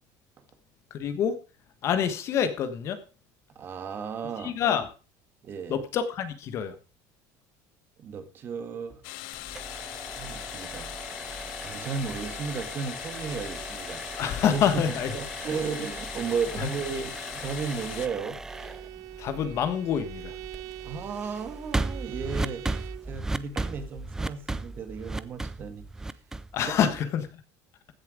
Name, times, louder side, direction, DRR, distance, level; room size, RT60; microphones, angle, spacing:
voice 1, 0.9-1.3 1.8-3.0 4.4-4.9 5.7-6.7 14.2-15.2 16.6-16.7 19.2-20.4 26.5-27.3, left 8 dB, 35° left, 10 dB, 1.3 m, -27 dB
voice 2, 3.5-4.5 5.4-5.8 8.0-9.0 10.2-10.9 11.6-14.0 14.5-14.8 15.1-18.4 20.8-25.8, right 5 dB, 30° right, 9 dB, 1.8 m, -34 dB
sound 1, 9.0-18.1, left 19 dB, 75° left, 0.7 m, -40 dB
sound 2, 9.3-27.2, right 2 dB, 5° right, 0.5 m, -37 dB
Bowed string instrument, 18.5-23.1, right 15 dB, 50° right, 0.8 m, -43 dB
15.5 x 7.4 x 5.1 m, 0.35 s
cardioid pair, 180°, 8 cm